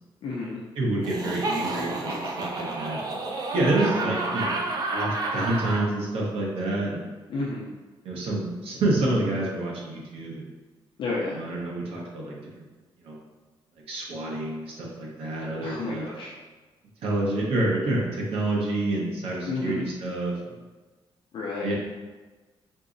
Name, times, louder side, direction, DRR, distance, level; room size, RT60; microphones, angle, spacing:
voice 1, 0.2-0.6 7.3-7.7 11.0-11.4 15.6-16.3 19.4-19.8 21.3-21.7, left 3 dB, 60° left, -5 dB, 0.5 m, -31 dB
voice 2, 0.8-3.2 3.5-4.6 4.9-7.1 8.0-10.5 11.3-12.7 13.0-13.2 13.9-16.1 17.0-20.3 21.6-21.7, right 2 dB, 90° right, -3 dB, 0.8 m, -28 dB
Laughter, 1.0-5.9, right 2 dB, 40° right, 0.5 m, -30 dB
3.9 x 2.7 x 2.5 m, 1.3 s
wide cardioid pair, 160°, 10 cm